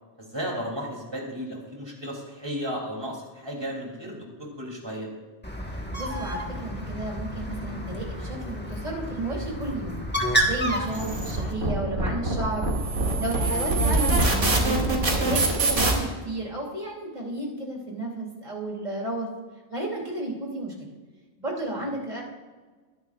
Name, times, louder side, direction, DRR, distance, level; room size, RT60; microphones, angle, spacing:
voice 1, 0.2-5.1 10.7-10.8, equal, 20° right, -1 dB, 3.1 m, -34 dB
Bird, 5.4-11.5, right 1 dB, 10° left, 1.4 m, -30 dB
voice 2, 6.0-10.0 10.4-12.7 13.2-19.3 19.7-20.9 21.4-22.2, right 1 dB, 35° right, -2 dB, 3.1 m, -32 dB
sound 1, 10.9-15.9, right 2 dB, 80° right, 2.7 m, -24 dB
21.0 x 11.0 x 2.5 m, 1.4 s
omnidirectional pair, 1.2 m